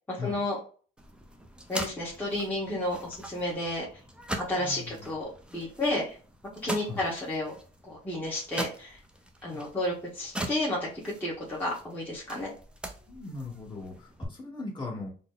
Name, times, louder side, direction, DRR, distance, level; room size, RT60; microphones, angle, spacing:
voice 1, 0.1-0.6 1.7-3.9 4.5-6.1 6.6-7.5 7.9-9.0 9.4-12.5, left 1 dB, 10° left, -6 dB, 1.3 m, -31 dB
sound 1, 1.0-14.2, right 1 dB, 5° right, 0.6 m, -42 dB
voice 2, 4.6-5.1 6.8-7.1 9.5-9.6 13.1-15.1, left 3 dB, 25° left, -2 dB, 1.7 m, -39 dB
3.9 x 2.2 x 3.8 m, 0.40 s
cardioid pair, 110°, 17 cm